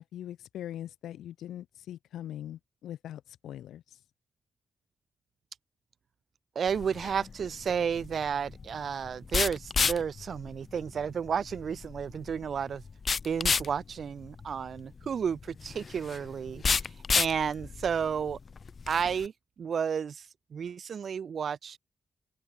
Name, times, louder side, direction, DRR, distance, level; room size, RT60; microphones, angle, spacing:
voice 1, 0.0-4.0, left 11 dB, 85° left, 7.5 m, -42 dB
voice 2, 6.6-12.9 13.2-18.4 18.9-19.3 19.6-21.8, right 7 dB, 65° right, 0.7 m, -32 dB
sound 1, 6.7-19.3, left 5 dB, 50° left, 5.2 m, -33 dB
open air
cardioid pair, 60°, 0 cm